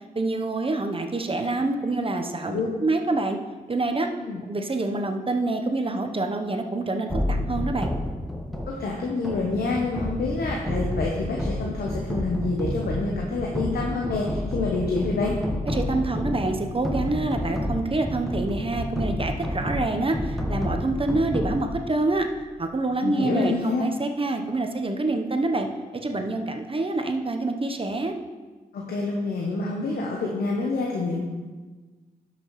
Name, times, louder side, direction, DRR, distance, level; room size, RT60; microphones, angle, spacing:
voice 1, 0.1-3.4 3.7-4.1 4.5-7.9 15.7-22.3 22.6-25.7 26.0-28.1, right 2 dB, 35° right, 5 dB, 0.9 m, -26 dB
sound 1, 7.1-22.4, left 1 dB, ahead, 1.6 m, -30 dB
voice 2, 8.7-15.3 23.0-23.8 28.7-31.2, left 3 dB, 85° left, -1 dB, 1.0 m, -27 dB
12.0 x 5.9 x 3.1 m, 1.3 s
cardioid pair, 50°, 16 cm